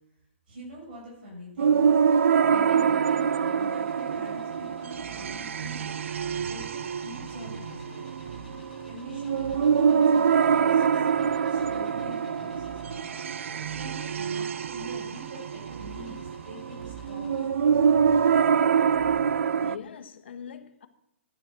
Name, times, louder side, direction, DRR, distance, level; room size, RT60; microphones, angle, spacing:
voice 1, 0.5-5.9 6.4-8.2 8.8-18.3, equal, 45° right, 7.4 m, -45 dB
sound 1, 1.6-19.8, right 7 dB, 75° right, 0.6 m, -25 dB
sound 2, 2.6-17.5, left 1 dB, ahead, 3.1 m, -53 dB
sound 3, 4.9-19.7, right 6 dB, 30° right, 0.9 m, -46 dB
voice 2, 19.2-20.9, left 8 dB, 55° left, 1.5 m, -43 dB
14.5 x 10.5 x 6.1 m
hypercardioid pair, 170°, 7 cm